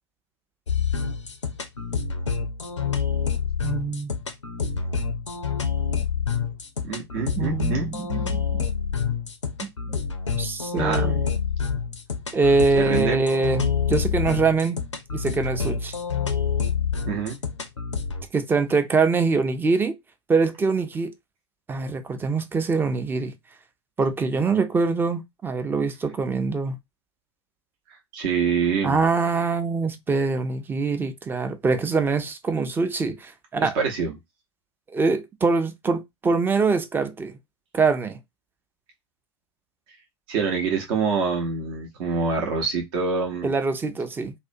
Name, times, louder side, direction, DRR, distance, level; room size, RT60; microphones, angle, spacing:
sound 1, 0.7-18.2, left 6 dB, 85° left, 0.4 m, -27 dB
voice 1, 3.6-4.1 7.4-8.6 9.9-10.0 10.3-11.3 12.3-14.8 15.1-15.9 18.3-20.0 20.3-21.1 21.7-23.3 24.0-26.8 28.8-33.8 34.9-37.3 37.7-38.2 43.4-44.3, right 4 dB, 15° right, 0.4 m, -24 dB
voice 2, 6.8-7.9 10.7-11.1 12.7-13.3 17.1-17.4 28.1-29.0 33.6-34.1 40.3-43.5, right 5 dB, 55° right, 0.7 m, -26 dB
2.4 x 2.1 x 2.5 m
figure-of-eight pair, 80°, 15 cm